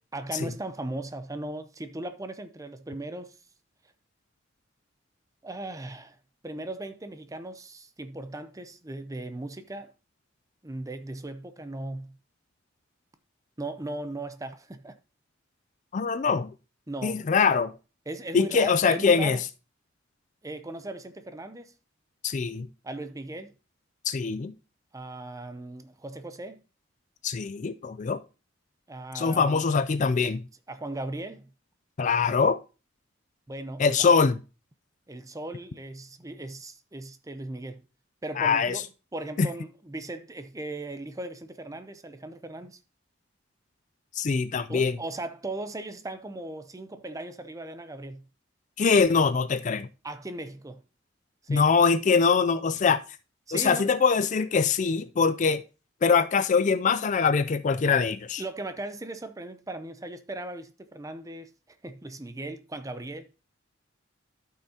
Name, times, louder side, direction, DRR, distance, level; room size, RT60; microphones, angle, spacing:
voice 1, 0.1-3.4 5.4-6.2 6.4-9.9 10.6-12.2 13.6-15.0 16.9-17.2 18.1-19.4 20.4-21.7 22.8-23.5 24.9-26.6 28.9-29.6 30.7-31.5 33.5-34.1 35.1-37.8 38.2-38.9 39.1-42.8 44.7-48.3 50.0-50.8 51.4-51.7 53.5-54.0 58.4-61.5 61.8-63.3, right 2 dB, 15° right, 0.6 m, -38 dB
voice 2, 15.9-16.5 17.0-17.7 18.3-19.4 22.2-22.7 24.0-24.5 27.2-28.2 29.1-30.4 32.0-32.6 33.8-34.4 38.4-38.8 39.4-39.5 44.2-44.9 48.8-49.9 51.5-53.0 53.5-55.6 56.0-58.4, left 5 dB, 40° left, 0.4 m, -23 dB
12.5 x 5.7 x 2.8 m
head